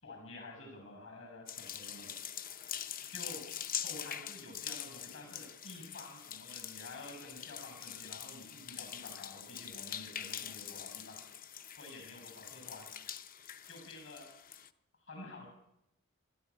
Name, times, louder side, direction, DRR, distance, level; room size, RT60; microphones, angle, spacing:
voice 1, 0.0-2.2 3.1-3.5 3.8-11.2 11.8-12.9 13.7-14.3 14.9-15.5, left 2 dB, 60° left, 4 dB, 7.2 m, -50 dB
sound 1, 1.5-14.7, left 9 dB, 40° left, 0.7 m, -44 dB
25.0 x 13.0 x 8.6 m, 0.84 s
head